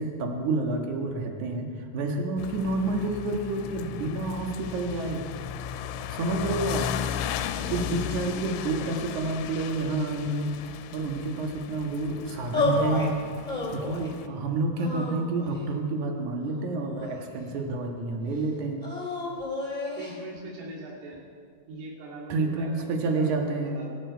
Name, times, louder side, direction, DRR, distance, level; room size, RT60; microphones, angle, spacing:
voice 1, 0.0-5.2 6.1-6.9 7.7-10.5 10.9-13.2 13.7-18.8 22.3-23.8, right 2 dB, 65° right, 2 dB, 1.9 m, -29 dB
sound 1, 2.4-14.3, left 9 dB, 85° left, 3.1 m, -36 dB
voice 2, 8.3-9.0 20.0-21.2 21.7-24.0, right 2 dB, 80° right, -2 dB, 5.3 m, -41 dB
sound 2, 12.5-13.1 13.5-14.1 14.8-15.7 16.4-17.4 18.8-20.2, left 2 dB, 10° left, 2.2 m, -31 dB
24.5 x 12.0 x 4.6 m, 2.1 s
omnidirectional pair, 5.7 m